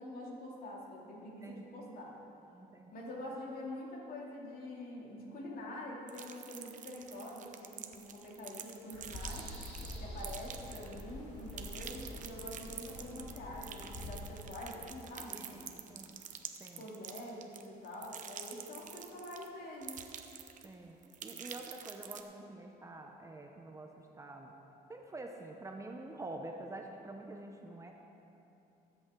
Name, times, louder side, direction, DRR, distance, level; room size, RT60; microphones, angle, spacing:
voice 1, 0.0-2.1 2.9-9.5 10.0-15.8 16.8-20.0, left 1 dB, 60° left, -3 dB, 2.8 m, -46 dB
voice 2, 2.5-2.9 15.3-16.1 16.6-16.9 20.6-24.5 24.9-27.9, right 2 dB, 20° right, 2 dB, 0.8 m, -47 dB
sound 1, 6.1-11.1 11.4-19.5 19.8-20.7 21.0-22.2, right 8 dB, 50° right, 0.8 m, -47 dB
sound 2, 8.9-14.1, left 1 dB, 85° left, 2.8 m, -46 dB
19.0 x 8.2 x 3.8 m, 2.9 s
cardioid pair, 110°, 17 cm